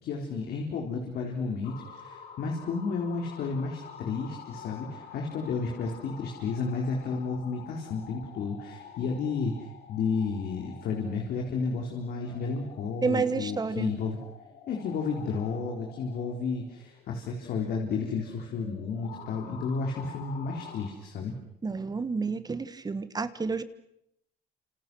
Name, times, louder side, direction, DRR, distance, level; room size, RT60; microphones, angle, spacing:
voice 1, 0.0-14.2 14.7-21.3, left 4 dB, 70° left, 1 dB, 4.3 m, -32 dB
sound 1, 1.6-20.9, left 7 dB, 85° left, 6.3 m, -48 dB
voice 2, 13.0-13.9 21.6-23.6, right 4 dB, 25° right, 13 dB, 1.5 m, -30 dB
28.5 x 28.0 x 6.3 m, 0.76 s
cardioid pair, 110°, 17 cm